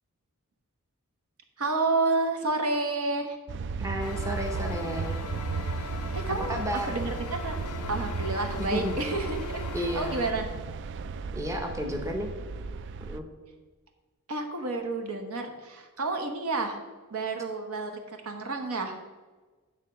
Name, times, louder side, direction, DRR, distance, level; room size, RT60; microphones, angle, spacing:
voice 1, 1.6-3.4 6.1-6.6 6.9-7.6 7.9-10.5 14.3-16.8 17.1-19.0, right 3 dB, 70° right, 5 dB, 1.1 m, -30 dB
sound 1, 3.5-13.2, right 4 dB, 55° right, 0.3 m, -35 dB
voice 2, 3.8-5.2 6.5-7.0 8.6-8.9 9.7-10.2 11.3-12.3 13.1-13.2, equal, 15° right, 2 dB, 0.8 m, -32 dB
sound 2, 4.0-10.3, left 6 dB, 85° left, 0.5 m, -40 dB
9.0 x 3.7 x 6.7 m, 1.3 s
head